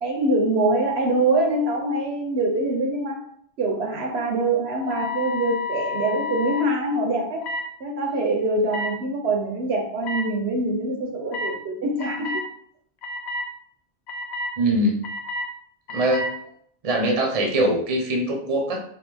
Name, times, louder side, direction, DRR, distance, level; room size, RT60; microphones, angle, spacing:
voice 1, 0.0-3.3 3.6-7.5 7.8-12.4, right 2 dB, 70° right, 2 dB, 0.9 m, -24 dB
sound 1, 4.8-6.6 7.4-7.6 8.7-8.9 10.0-10.2 11.3-11.5 12.0-12.4 13.0-13.4 14.1-14.5 15.0-15.5 15.9-16.3, left 3 dB, 75° left, 0.9 m, -30 dB
voice 2, 14.6-15.0 15.9-16.3 16.8-18.8, right 1 dB, 35° right, 1 dB, 0.7 m, -22 dB
3.5 x 2.7 x 3.3 m, 0.65 s
omnidirectional pair, 1.2 m